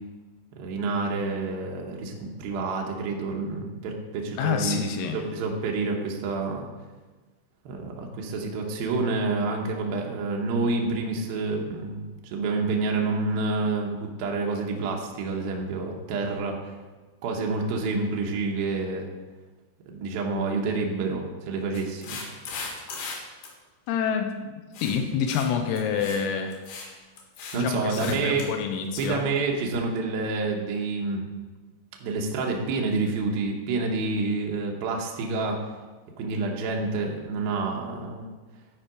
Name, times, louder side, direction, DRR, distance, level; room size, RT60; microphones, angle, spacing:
voice 1, 0.6-4.8 5.1-6.7 7.7-16.8 17.2-19.1 19.9-22.2 27.5-28.5 29.0-31.3 32.0-35.7 36.2-38.3, right 3 dB, 90° right, 0 dB, 2.1 m, -28 dB
voice 2, 4.4-5.2 23.9-26.6 27.5-29.2, left 7 dB, 85° left, 6 dB, 2.9 m, -28 dB
sound 1, 21.7-23.2 23.4-23.5 24.7-25.0 25.3-25.5 25.7-26.2 26.5-26.9 27.2-27.6 27.9-28.5 29.0-29.1, left 4 dB, 65° left, 3.0 m, -38 dB
12.5 x 4.5 x 5.0 m, 1.3 s
omnidirectional pair, 5.8 m